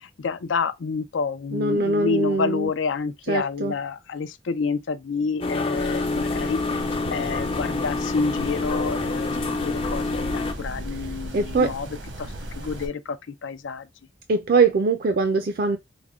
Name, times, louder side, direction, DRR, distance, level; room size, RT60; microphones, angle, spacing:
voice 1, 0.0-6.6 7.1-11.9 12.2-13.9, left 5 dB, 90° left, 0.5 m, -29 dB
voice 2, 1.5-2.7 3.3-3.7 11.3-11.7 14.3-15.8, right 3 dB, 50° right, 0.4 m, -22 dB
sound 1, 5.4-10.5, left 3 dB, 30° left, 0.4 m, -27 dB
sound 2, 5.7-12.9, right 1 dB, 85° right, 1.2 m, -36 dB
5.0 x 2.1 x 3.6 m
head